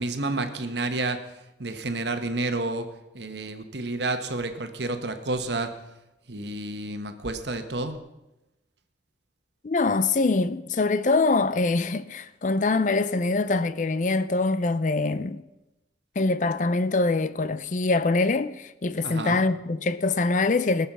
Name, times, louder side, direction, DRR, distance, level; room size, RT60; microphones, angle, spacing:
voice 1, 0.0-2.9 3.1-5.7 6.3-8.0 19.0-19.4, right 2 dB, 75° right, 1.2 m, -30 dB
voice 2, 9.6-15.4 16.2-20.9, left 3 dB, 45° left, 0.5 m, -24 dB
18.5 x 7.1 x 6.0 m
head